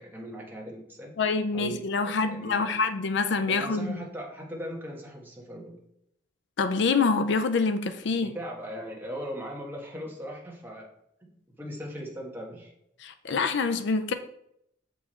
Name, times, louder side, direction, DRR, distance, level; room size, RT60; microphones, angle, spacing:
voice 1, 0.0-1.1 1.5-2.7 3.5-5.8 8.2-10.9 11.2-12.7, equal, 10° right, -2 dB, 1.5 m, -39 dB
voice 2, 1.2-4.0 6.6-8.3 13.0-14.1, left 4 dB, 65° left, 10 dB, 0.5 m, -26 dB
7.1 x 4.6 x 4.3 m, 0.76 s
head